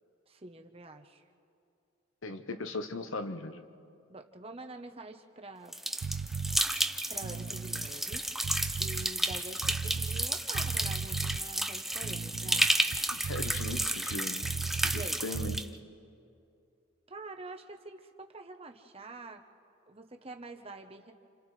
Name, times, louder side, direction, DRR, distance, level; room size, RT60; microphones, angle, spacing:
voice 1, 0.3-1.2 4.1-5.7 7.1-12.7 14.9-15.2 17.1-19.4 19.9-21.1, right 2 dB, 30° right, 5 dB, 0.9 m, -46 dB
voice 2, 2.2-3.6 13.1-14.5 14.8-15.6, left 2 dB, 70° left, 8 dB, 1.0 m, -38 dB
sound 1, 5.7-15.6, right 1 dB, ahead, 0.4 m, -32 dB
sound 2, 6.0-6.6 7.1-10.3 10.5-11.4 11.9-15.1 15.3-15.6, right 5 dB, 65° right, 0.4 m, -36 dB
30.0 x 28.5 x 3.3 m, 2.6 s
head